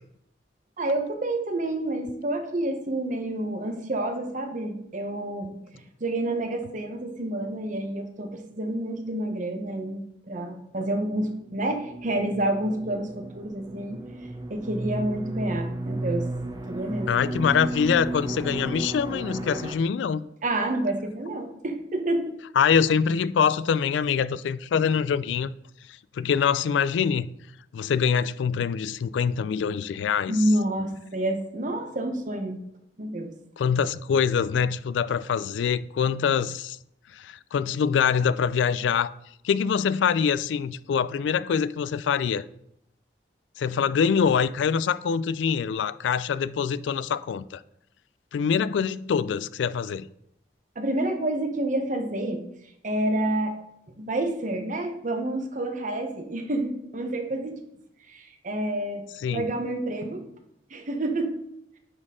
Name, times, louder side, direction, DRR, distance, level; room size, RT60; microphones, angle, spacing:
voice 1, 0.8-5.5 6.0-14.0 14.5-16.3 16.7-17.1 20.4-22.4 30.3-32.6 33.0-33.3 50.8-52.4 52.8-53.5 54.0-57.6 58.1-59.0 59.3-60.2 60.7-61.3, right 1 dB, 45° right, 1.0 m, -28 dB
sound 1, 11.2-19.8, right 1 dB, 20° right, 0.7 m, -34 dB
voice 2, 17.1-20.2 22.6-25.5 26.1-27.3 27.7-30.4 33.6-36.8 37.1-39.1 39.4-42.4 43.6-47.6 48.3-50.1 59.2-59.4, left 7 dB, 85° left, 0.3 m, -24 dB
9.6 x 4.2 x 3.7 m
head